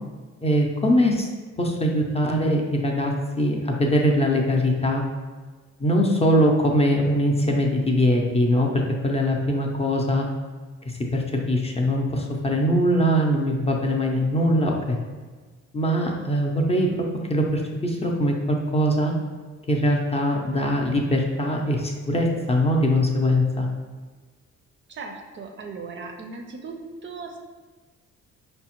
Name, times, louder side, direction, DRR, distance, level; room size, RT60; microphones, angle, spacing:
voice 1, 0.4-1.3 1.6-5.0 5.8-10.3 11.1-11.2 11.5-15.0 15.7-19.1 19.7-23.7, equal, 20° left, 0 dB, 0.5 m, -22 dB
voice 2, 24.9-26.8 27.0-27.4, right 4 dB, 40° right, 3 dB, 0.4 m, -37 dB
4.9 x 2.1 x 2.9 m, 1.4 s
cardioid pair, 90°, 30 cm